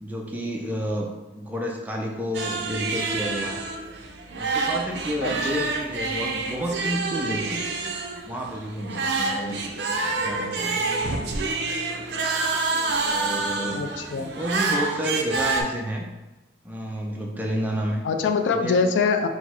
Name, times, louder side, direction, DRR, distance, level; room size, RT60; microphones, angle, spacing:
voice 1, 0.0-3.7 4.3-7.6 8.2-9.6 10.2-10.9 13.1-13.9 14.4-16.1 16.6-18.0 18.5-18.9, equal, 10° right, 0 dB, 0.4 m, -30 dB
sound 1, 2.3-15.6, right 3 dB, 60° right, 0.5 m, -27 dB
voice 2, 13.8-14.3 18.0-19.3, left 5 dB, 80° left, 7 dB, 0.3 m, -23 dB
4.5 x 2.0 x 4.3 m, 1.1 s
head